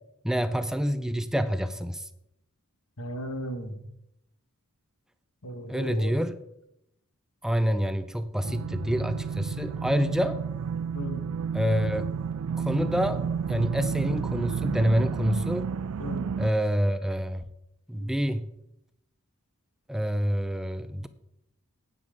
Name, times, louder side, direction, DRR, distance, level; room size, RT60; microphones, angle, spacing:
voice 1, 0.2-2.1 5.7-6.4 7.4-10.4 11.5-12.1 12.6-15.7 16.4-17.4 17.9-18.5 19.9-21.1, equal, ahead, 11 dB, 0.4 m, -27 dB
voice 2, 3.0-3.8 5.4-6.1 10.9-11.2 16.0-16.3 17.9-18.1, equal, 80° left, 7 dB, 1.6 m, -36 dB
sound 1, 8.4-16.5, right 6 dB, 70° right, 0.4 m, -31 dB
9.6 x 9.0 x 5.1 m, 0.82 s
head